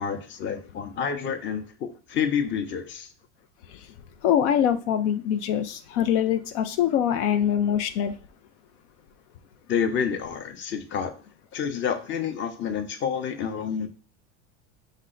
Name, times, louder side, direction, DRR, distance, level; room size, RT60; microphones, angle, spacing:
voice 1, 0.0-3.1 9.7-11.1 11.5-13.9, left 7 dB, 30° left, 7 dB, 0.7 m, -29 dB
voice 2, 4.2-8.1, left 9 dB, 75° left, 7 dB, 0.5 m, -23 dB
5.4 x 2.1 x 3.8 m, 0.38 s
supercardioid pair, 105°, 36 cm